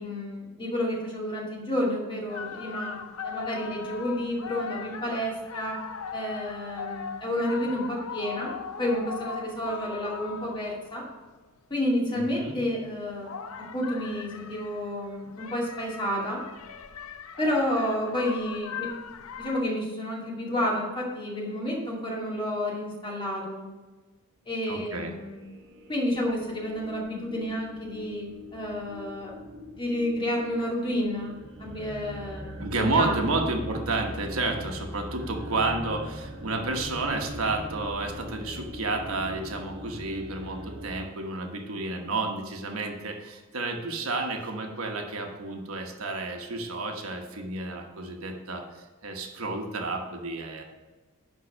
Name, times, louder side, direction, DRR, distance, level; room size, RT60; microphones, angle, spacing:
voice 1, 0.0-3.0 3.2-5.8 6.1-8.5 8.8-11.0 11.7-16.4 17.4-18.9 19.4-23.7 24.5-25.4 25.9-29.3 29.7-33.2, left 1 dB, 25° left, -3 dB, 2.3 m, -30 dB
sound 1, 2.3-11.1 12.8-19.6, left 6 dB, 80° left, 0.6 m, -39 dB
voice 2, 12.1-12.6 24.7-25.1 32.6-50.6, right 2 dB, 80° right, 3 dB, 1.2 m, -31 dB
sound 2, 25.2-41.1, equal, 55° right, 1.2 m, -41 dB
10.5 x 4.0 x 6.3 m, 1.2 s
head